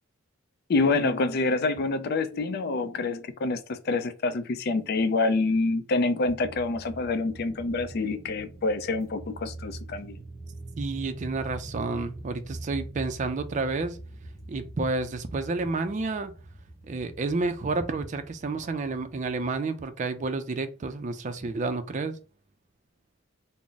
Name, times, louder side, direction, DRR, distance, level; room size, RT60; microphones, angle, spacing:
voice 1, 0.7-10.2, left 3 dB, 50° left, 0.4 m, -27 dB
sound 1, 6.2-19.6, right 2 dB, 15° right, 1.1 m, -43 dB
voice 2, 10.8-14.0 14.5-16.3 16.8-22.2, right 3 dB, 35° right, 0.4 m, -30 dB
3.5 x 2.0 x 3.9 m
head